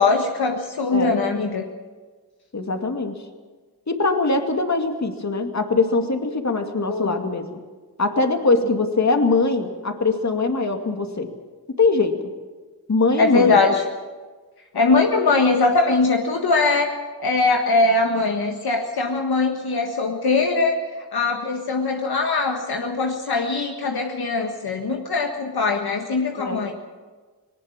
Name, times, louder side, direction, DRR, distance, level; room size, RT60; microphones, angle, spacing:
voice 1, 0.0-1.6 6.9-7.1 13.2-13.8 14.7-20.8 21.1-26.7, left 3 dB, 65° left, 2 dB, 1.7 m, -21 dB
voice 2, 2.5-3.2 3.9-7.6 8.0-11.3 11.7-12.2 12.9-13.6 26.4-26.6, left 3 dB, 40° left, 6 dB, 2.3 m, -22 dB
19.0 x 18.5 x 7.4 m, 1.4 s
cardioid pair, 55°, 41 cm